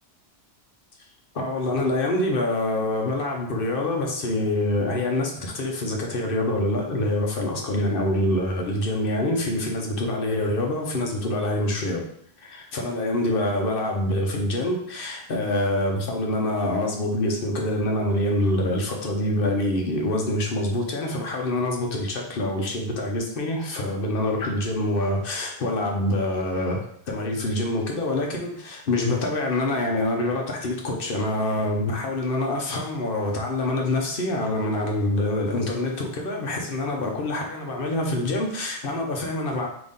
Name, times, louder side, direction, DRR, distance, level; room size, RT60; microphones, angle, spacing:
voice 1, 1.3-12.1 12.4-39.7, left 1 dB, 60° left, 1 dB, 1.0 m, -25 dB
4.0 x 2.9 x 3.6 m, 0.66 s
omnidirectional pair, 1.1 m